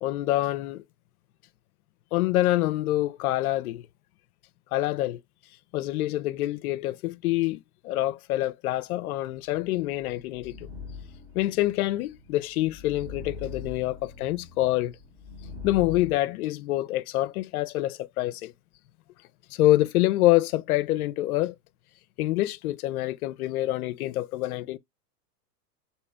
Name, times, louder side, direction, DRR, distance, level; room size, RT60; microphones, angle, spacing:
voice 1, 0.0-0.8 2.1-3.8 4.7-5.2 5.7-10.6 11.3-15.0 15.6-18.5 19.5-21.5 22.2-24.8, left 16 dB, 60° left, 0.5 m, -26 dB
sound 1, 10.2-16.1, left 4 dB, 10° right, 0.8 m, -42 dB
3.2 x 2.8 x 3.4 m
hypercardioid pair, 120°, 49 cm